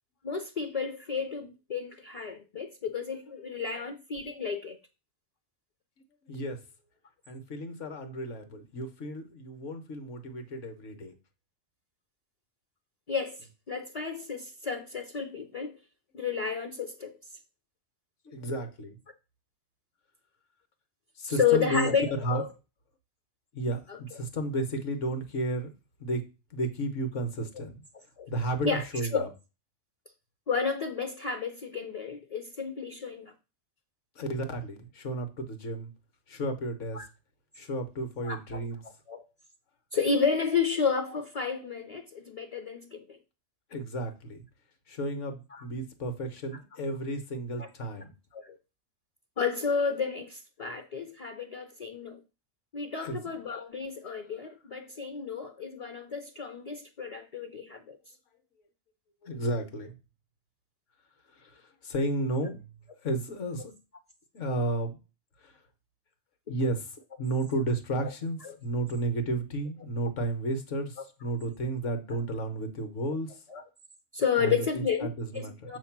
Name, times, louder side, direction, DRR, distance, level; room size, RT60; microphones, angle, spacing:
voice 1, 0.2-4.8 13.1-13.4 13.7-15.8 16.1-17.1 21.3-22.5 23.9-24.0 28.2-28.3 28.6-28.8 29.1-29.3 30.5-33.3 36.9-37.0 38.2-38.6 39.1-39.2 39.9-43.2 45.5-45.6 47.6-47.7 48.3-48.6 49.4-52.2 52.7-58.0 68.4-68.5 73.5-73.6 74.1-75.1 75.3-75.8, left 6 dB, 40° left, 6 dB, 0.5 m, -31 dB
voice 2, 6.3-6.6 7.3-11.1 18.2-19.0 21.2-21.9 22.2-22.4 23.5-25.7 26.0-26.2 26.5-27.8 28.3-29.3 34.1-35.9 36.3-37.0 37.5-38.8 43.7-44.4 44.9-48.1 53.0-53.4 59.2-60.0 61.4-62.7 63.0-63.7 64.3-64.9 65.4-65.5 66.5-73.4 74.4-75.8, right 1 dB, 70° left, 7 dB, 1.3 m, -33 dB
7.2 x 2.9 x 5.8 m, 0.30 s
omnidirectional pair, 1.4 m